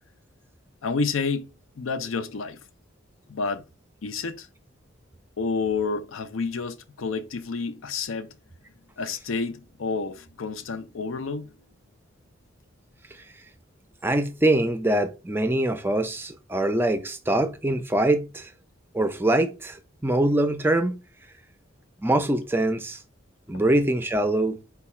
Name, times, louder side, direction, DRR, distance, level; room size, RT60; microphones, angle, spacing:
voice 1, 0.8-1.5 1.8-2.6 3.3-3.6 4.0-4.5 5.4-8.3 9.0-11.5, left 4 dB, 80° left, 0.5 m, -29 dB
voice 2, 14.0-18.5 18.9-19.8 20.0-21.0 22.0-23.0 23.5-24.6, right 1 dB, 10° right, 0.4 m, -23 dB
4.6 x 2.3 x 4.2 m
head